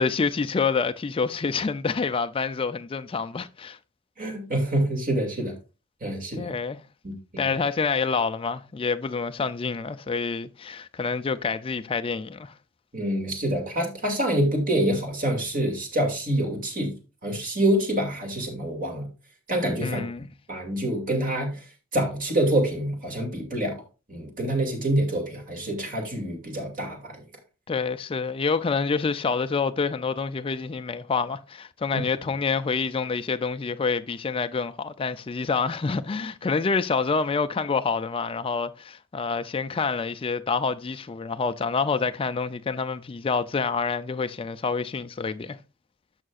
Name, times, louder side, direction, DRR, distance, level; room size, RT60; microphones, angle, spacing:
voice 1, 0.0-3.8 6.4-6.8 7.4-12.5 19.8-20.3 27.7-45.6, left 5 dB, 25° left, 0.4 m, -27 dB
voice 2, 4.2-5.5 6.0-6.5 7.0-7.4 12.9-16.9 17.2-19.1 19.5-20.0 20.5-21.7 21.9-23.8 24.1-27.2 31.9-32.0, right 1 dB, 40° right, 2.4 m, -26 dB
11.0 x 6.5 x 2.4 m
head